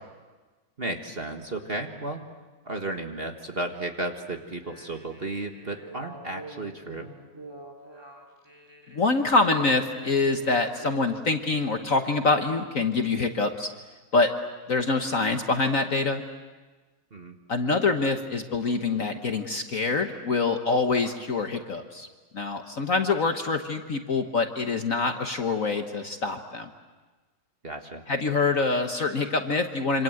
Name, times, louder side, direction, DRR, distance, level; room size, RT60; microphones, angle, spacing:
voice 1, 0.8-2.2 2.6-7.1 17.1-17.4 27.6-28.0, right 2 dB, 30° right, 4 dB, 1.6 m, -34 dB
sound 1, 4.5-11.2, equal, 10° right, 2.9 m, -45 dB
voice 2, 8.9-13.7 14.1-14.3 14.7-16.2 17.5-22.1 22.3-26.7 28.1-30.0, left 3 dB, 45° left, 6 dB, 1.4 m, -25 dB
27.0 x 26.0 x 7.8 m, 1.3 s
omnidirectional pair, 2.2 m